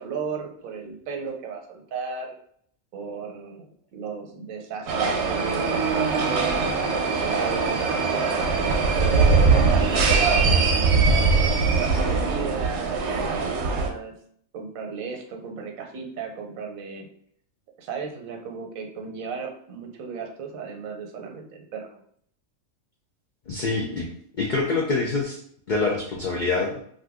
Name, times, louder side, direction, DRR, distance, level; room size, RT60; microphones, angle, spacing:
voice 1, 0.0-2.4 2.9-6.6 7.2-8.3 9.0-14.1 14.5-17.1 17.8-21.9, right 5 dB, 90° right, 3 dB, 1.1 m, -35 dB
sound 1, 4.9-13.9, right 4 dB, 65° right, 0.8 m, -21 dB
voice 2, 23.5-24.1 24.3-25.4 25.7-26.7, left 3 dB, 80° left, -1 dB, 0.4 m, -25 dB
2.6 x 2.5 x 3.4 m, 0.64 s
omnidirectional pair, 1.4 m